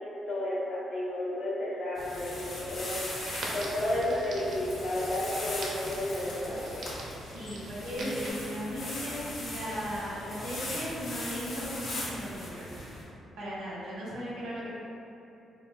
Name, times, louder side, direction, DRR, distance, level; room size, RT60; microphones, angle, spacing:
voice 1, 0.0-6.9 7.8-8.4, left 1 dB, 70° left, -9 dB, 0.8 m, -32 dB
sound 1, 2.0-13.0, left 1 dB, 85° left, 1.4 m, -39 dB
Crackle, 3.2-8.3, right 1 dB, 65° right, 0.5 m, -43 dB
voice 2, 7.2-12.7 13.4-14.7, equal, 90° right, -7 dB, 1.0 m, -37 dB
4.6 x 2.3 x 2.3 m, 2.9 s
cardioid pair, 130°, 0 cm